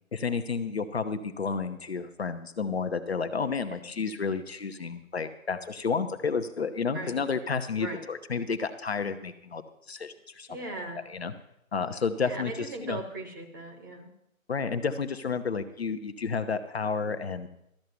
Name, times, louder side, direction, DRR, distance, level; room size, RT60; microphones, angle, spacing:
voice 1, 0.1-9.6 9.9-10.5 10.9-11.3 11.7-13.0 14.5-17.5, left 5 dB, 50° left, 8 dB, 1.0 m, -31 dB
voice 2, 10.5-11.0 12.2-14.1, right 2 dB, 15° right, 2 dB, 1.1 m, -38 dB
13.0 x 6.7 x 8.0 m, 0.79 s
figure-of-eight pair, 150°, 41 cm